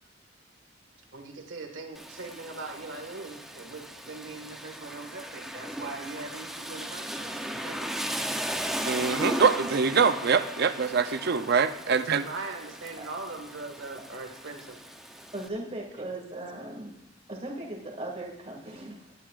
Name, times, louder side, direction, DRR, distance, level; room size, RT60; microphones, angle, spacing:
voice 1, 1.1-7.9 11.9-14.8, right 3 dB, 70° right, 3 dB, 1.8 m, -41 dB
Rain, 1.9-15.5, equal, ahead, 0.7 m, -37 dB
voice 2, 8.8-12.2, right 5 dB, 50° right, 11 dB, 0.6 m, -24 dB
voice 3, 15.3-16.9 17.3-19.1, right 1 dB, 30° right, -1 dB, 2.2 m, -38 dB
20.0 x 11.0 x 2.5 m, 0.90 s
head